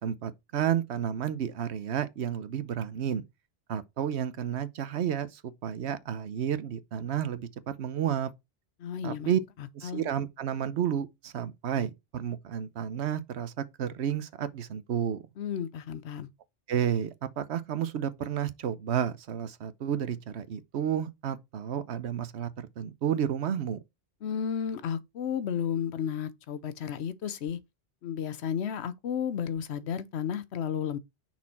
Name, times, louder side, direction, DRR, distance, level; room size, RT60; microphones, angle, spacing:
voice 1, 0.0-3.2 3.7-8.3 9.0-9.4 9.7-15.2 16.7-23.8, right 9 dB, 80° right, 1.0 m, -31 dB
voice 2, 8.8-9.3 9.6-10.0 15.4-16.3 24.2-27.6 28.0-31.0, left 8 dB, 80° left, 1.0 m, -33 dB
6.2 x 4.3 x 4.1 m
omnidirectional pair, 1.1 m